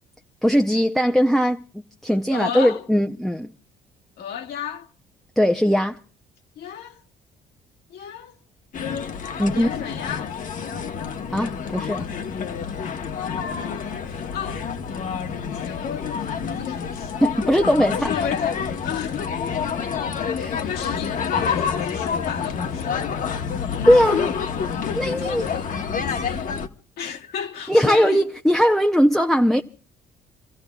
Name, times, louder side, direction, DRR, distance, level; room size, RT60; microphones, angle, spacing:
voice 1, 0.4-3.5 5.4-6.0 9.4-9.7 11.3-12.1 17.2-18.1 20.3-20.7 23.9-24.3 25.0-25.5 27.7-29.6, equal, ahead, 0.6 m, -19 dB
voice 2, 2.3-2.8 4.2-4.9 6.6-7.0 7.9-8.4 9.5-10.3 11.6-11.7 12.7-12.8 13.4-14.6 15.1-17.1 17.9-19.3 20.6-23.4 23.7-24.0 25.2-25.7 26.1-26.5 27.0-28.2, left 8 dB, 70° left, 1.8 m, -33 dB
sound 1, 8.7-26.7, left 6 dB, 50° left, 1.2 m, -28 dB
29.5 x 15.0 x 2.3 m
cardioid pair, 110°, 17 cm